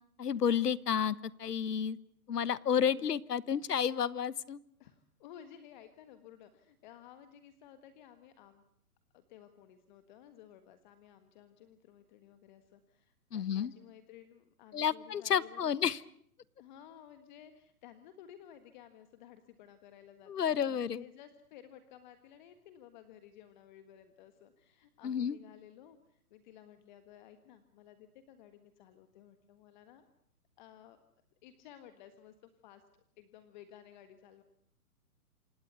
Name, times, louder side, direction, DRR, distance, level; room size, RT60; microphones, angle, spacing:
voice 1, 0.2-2.0 2.3-4.6 13.3-13.7 14.7-16.0 20.3-21.0 25.0-25.4, left 8 dB, 90° left, 20 dB, 1.2 m, -31 dB
voice 2, 4.8-8.6 9.1-15.7 16.6-30.1 30.6-31.0 31.4-32.8 33.2-34.4, left 10 dB, 30° left, 10 dB, 1.5 m, -55 dB
27.5 x 18.5 x 8.1 m, 0.66 s
hypercardioid pair, 155°, 46 cm